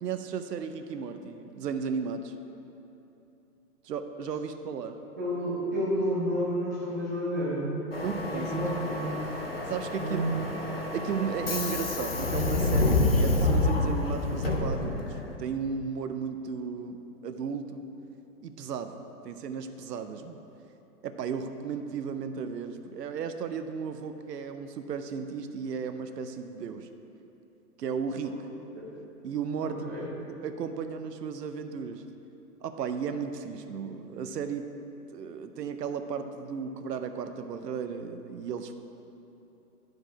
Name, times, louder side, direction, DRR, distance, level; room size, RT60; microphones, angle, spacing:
voice 1, 0.0-2.3 3.8-5.0 8.0-8.5 9.7-10.2 10.9-17.0 17.2-17.8 18.4-19.0 19.2-20.4 21.0-26.9 27.8-28.4 29.2-32.0 32.6-34.7 35.1-38.7, right 6 dB, 85° right, 8 dB, 0.7 m, -35 dB
voice 2, 5.2-7.8 8.3-9.1 10.0-10.5 28.7-28.9 29.6-30.1, equal, 10° right, -11 dB, 0.6 m, -30 dB
Subway metro underground, 7.9-15.3, left 2 dB, 40° left, 0.5 m, -28 dB
10.5 x 4.9 x 4.5 m, 3.0 s
hypercardioid pair, 180°, 48 cm